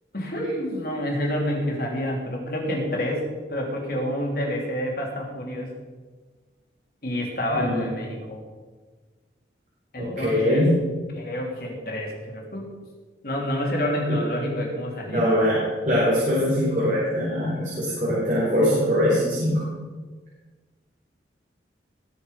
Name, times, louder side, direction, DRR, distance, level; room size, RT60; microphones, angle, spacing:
voice 1, 0.1-5.7 7.0-8.4 9.9-10.6 11.1-12.7 13.2-15.4, equal, 55° left, -1 dB, 3.2 m, -28 dB
voice 2, 7.5-7.8 10.0-10.8 14.1-14.2 15.1-15.6 15.8-19.6, equal, 45° right, -8 dB, 4.4 m, -22 dB
20.5 x 7.1 x 5.2 m, 1.3 s
head